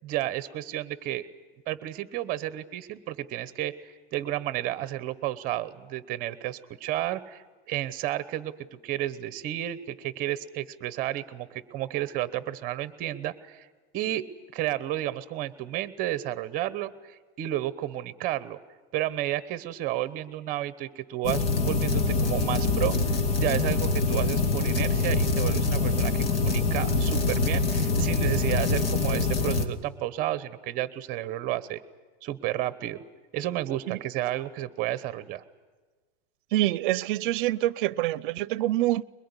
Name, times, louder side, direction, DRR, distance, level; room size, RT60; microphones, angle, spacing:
voice 1, 0.0-1.3 1.7-13.7 13.9-14.3 14.5-18.6 18.9-23.0 23.4-31.8 32.2-33.0 33.3-35.4, right 14 dB, 30° right, 1.0 m, -32 dB
aircleaner hum noise coronaldischarge, 21.2-29.7, left 3 dB, 70° left, 2.8 m, -25 dB
voice 2, 36.5-39.0, right 15 dB, 60° right, 0.7 m, -26 dB
22.5 x 21.5 x 9.8 m
supercardioid pair, 170°, 30 cm